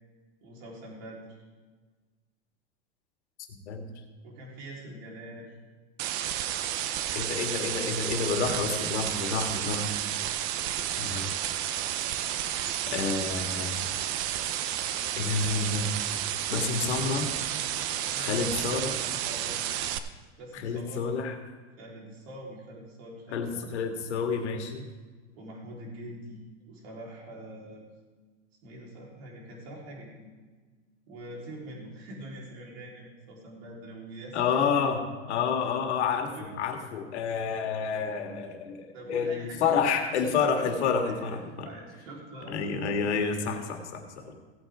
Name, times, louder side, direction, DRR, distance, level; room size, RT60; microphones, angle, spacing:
voice 1, 0.4-1.4 4.2-5.5 8.4-8.6 18.1-19.8 20.4-21.0 21.8-23.7 25.4-26.4 26.7-27.8 28.6-30.3 31.1-34.9 36.3-36.5 38.9-40.1 41.0-42.6, right 1 dB, 60° right, -2 dB, 3.8 m, -44 dB
voice 2, 3.5-3.9 7.1-9.9 11.0-11.3 12.9-13.8 15.2-15.9 16.5-17.3 18.2-18.9 20.5-21.3 23.3-24.8 34.3-35.0 35.3-41.7 42.5-44.4, left 5 dB, 75° left, 4 dB, 1.9 m, -29 dB
sound 1, 6.0-20.0, right 11 dB, 40° right, 0.7 m, -31 dB
16.5 x 8.8 x 3.6 m, 1.4 s
hypercardioid pair, 130°, 34 cm